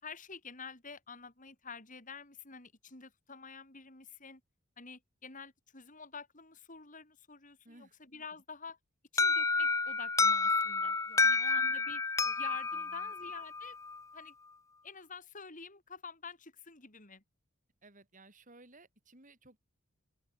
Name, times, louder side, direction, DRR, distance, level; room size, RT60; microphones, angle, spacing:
voice 1, 0.0-4.4 4.8-8.8 9.1-11.0 11.2-12.0 12.4-13.8 14.1-14.3 14.8-17.2, left 5 dB, 35° left, 4.3 m, -48 dB
voice 2, 7.6-7.9 11.1-11.8 12.2-12.4 12.7-13.1 17.8-19.6, right 2 dB, 40° right, 5.0 m, -59 dB
Alarm, 9.2-14.0, left 4 dB, 15° left, 0.4 m, -30 dB
open air
head